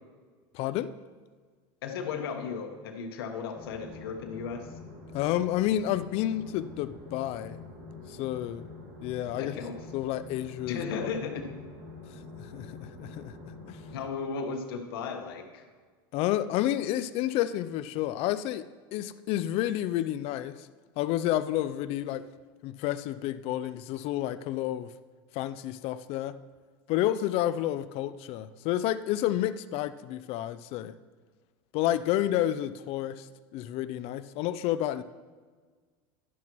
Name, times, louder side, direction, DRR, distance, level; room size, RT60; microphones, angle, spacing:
voice 1, 0.5-0.9 5.1-7.6 8.1-8.7 9.0-9.5 9.9-10.8 12.4-13.8 16.1-18.6 18.9-20.7 21.0-22.2 22.6-24.9 25.3-26.4 26.9-31.0 31.7-33.3 33.5-35.0, left 13 dB, 55° left, 13 dB, 0.4 m, -30 dB
voice 2, 1.8-4.7 9.3-9.8 10.7-11.5 13.9-15.6, left 5 dB, 85° left, 4 dB, 1.2 m, -35 dB
sound 1, 3.5-14.1, left 3 dB, 65° right, 2.5 m, -46 dB
11.0 x 10.5 x 3.0 m, 1.5 s
supercardioid pair, 110°, 12 cm